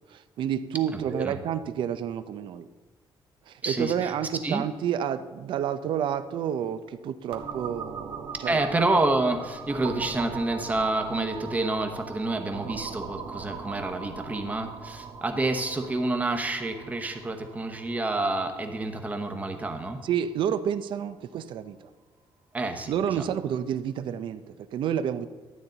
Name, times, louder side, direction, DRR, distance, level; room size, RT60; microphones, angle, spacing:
voice 1, 0.1-2.7 3.5-8.6 20.0-21.9 22.9-25.3, right 9 dB, 65° right, 12 dB, 0.5 m, -30 dB
voice 2, 0.9-1.4 3.6-4.1 4.4-4.6 8.5-20.0 22.5-23.2, right 2 dB, 15° right, 6 dB, 1.0 m, -28 dB
sound 1, 7.3-20.9, right 6 dB, 80° right, 1.3 m, -41 dB
12.5 x 8.8 x 3.9 m, 1.3 s
cardioid pair, 155°, 9 cm